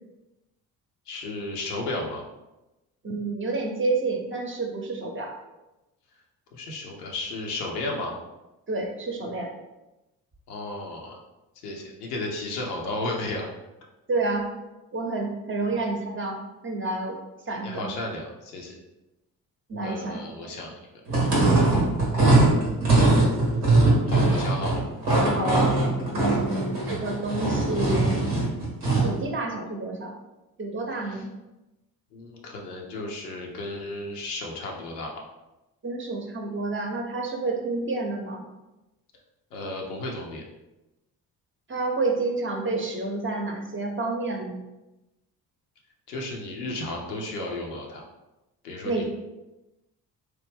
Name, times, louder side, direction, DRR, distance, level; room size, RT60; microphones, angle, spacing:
voice 1, 1.1-2.2 6.5-8.1 10.5-11.2 11.6-13.5 17.6-18.8 19.8-20.8 22.4-22.6 24.1-24.8 31.1-31.2 32.1-35.1 39.5-40.4 46.1-48.0 48.6-49.1, left 2 dB, 90° left, 0 dB, 0.6 m, -33 dB
voice 2, 3.0-5.3 8.7-9.5 14.1-14.5 14.9-16.4 16.6-17.2 17.5-17.9 19.7-20.2 25.2-25.7 26.1-28.2 29.0-30.1 30.6-31.3 35.8-38.5 41.7-44.6 48.8-49.1, right 3 dB, 25° right, 1 dB, 0.7 m, -29 dB
sound 1, 21.1-29.2, right 2 dB, 90° right, 0.8 m, -21 dB
2.9 x 2.1 x 3.3 m, 1.0 s
hypercardioid pair, 45°, 45 cm